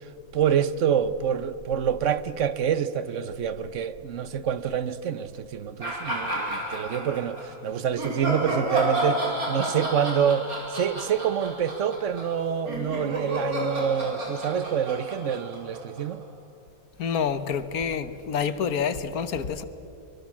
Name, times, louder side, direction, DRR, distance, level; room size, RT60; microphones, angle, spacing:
voice 1, 0.3-16.2, right 8 dB, 60° right, 1.1 m, -27 dB
sound 1, 5.8-7.5 8.0-16.2, equal, 90° right, 5.1 m, -31 dB
voice 2, 17.0-19.6, left 7 dB, 85° left, 1.6 m, -27 dB
25.0 x 23.5 x 7.4 m
omnidirectional pair, 1.5 m